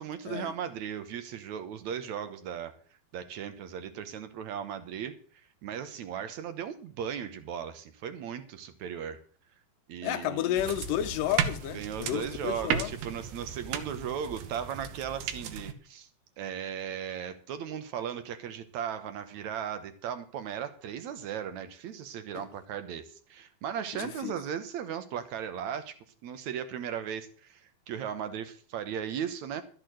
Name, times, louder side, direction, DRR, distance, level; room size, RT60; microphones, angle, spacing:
voice 1, 0.0-2.7 3.1-5.2 5.6-9.2 9.9-10.6 11.7-16.1 16.4-25.9 26.2-29.6, right 8 dB, 65° right, 2.0 m, -37 dB
voice 2, 10.0-13.0 22.3-22.5 23.9-24.4, left 12 dB, 75° left, 2.3 m, -32 dB
sound 1, 10.6-15.7, right 8 dB, 90° right, 3.0 m, -35 dB
13.0 x 6.7 x 7.6 m
omnidirectional pair, 4.3 m